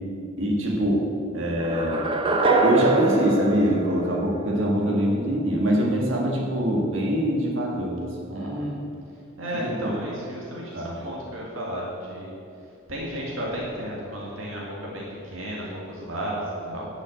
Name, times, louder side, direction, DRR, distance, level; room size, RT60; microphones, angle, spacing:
voice 1, 0.4-1.1 1.3-2.0 2.6-8.8 9.6-10.0 10.7-11.1 15.6-15.7, equal, 75° right, -1 dB, 1.8 m, -24 dB
sound 1, 1.6-4.7, right 3 dB, 25° right, 0.8 m, -24 dB
voice 2, 8.3-8.8 9.4-12.3 12.9-16.9, right 1 dB, 90° right, -4 dB, 2.1 m, -33 dB
10.5 x 6.2 x 7.9 m, 2.5 s
head